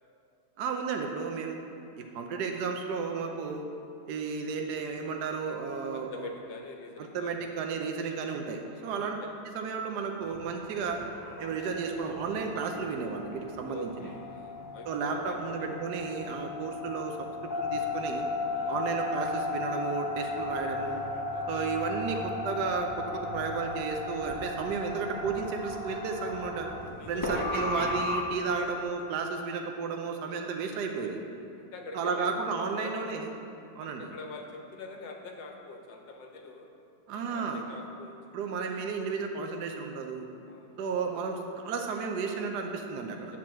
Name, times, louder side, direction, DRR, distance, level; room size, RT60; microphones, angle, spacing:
voice 1, 0.6-1.6 2.0-3.7 4.1-6.3 7.0-9.2 9.5-11.0 11.4-13.9 14.9-17.2 17.6-18.2 18.7-21.0 21.5-26.7 27.1-31.2 31.9-33.3 33.7-34.1 37.1-37.7 38.3-40.3 40.8-43.3, right 5 dB, 70° right, 2 dB, 1.2 m, -33 dB
voice 2, 5.9-7.5 8.7-8.9 9.2-9.3 10.7-10.9 13.6-15.7 18.5-18.8 21.3-21.7 26.9-27.5 28.6-28.7 30.7-33.2 33.8-36.7 37.1-38.4 39.0-39.2 40.4-40.7 43.3-43.4, left 3 dB, 75° left, 2 dB, 1.6 m, -45 dB
sound 1, 10.2-28.2, left 3 dB, 30° left, 0.4 m, -36 dB
9.6 x 4.5 x 7.2 m, 2.7 s
omnidirectional pair, 2.0 m